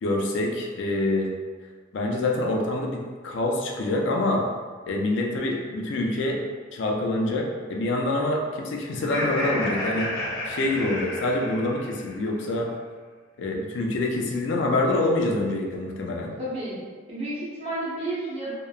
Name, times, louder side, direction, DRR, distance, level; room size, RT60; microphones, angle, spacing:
voice 1, 0.0-1.3 1.9-4.4 4.9-6.4 6.7-10.1 10.5-12.7 13.4-16.3, left 2 dB, 75° left, 0 dB, 0.4 m, -26 dB
Laughter, 8.9-12.2, left 1 dB, 15° left, 1.0 m, -31 dB
voice 2, 16.4-16.8 17.1-18.5, right 1 dB, 35° right, -8 dB, 0.8 m, -31 dB
2.8 x 2.0 x 2.3 m, 1.5 s
head